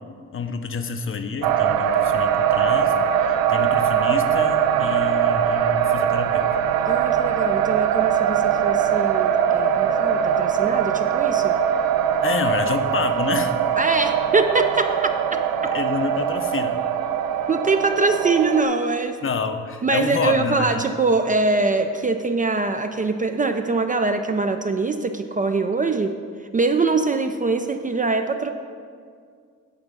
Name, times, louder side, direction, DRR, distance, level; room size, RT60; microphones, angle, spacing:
voice 1, 0.3-6.4 12.2-13.6 15.7-16.8 19.2-20.8, left 5 dB, 40° left, 8 dB, 0.6 m, -28 dB
sound 1, 1.4-18.6, right 9 dB, 80° right, 0.5 m, -21 dB
voice 2, 6.8-11.6 13.8-15.4 17.5-19.2 19.8-26.2 26.5-28.5, right 3 dB, 25° right, 6 dB, 0.4 m, -23 dB
9.0 x 3.5 x 5.4 m, 2.1 s
supercardioid pair, 65°, 34 cm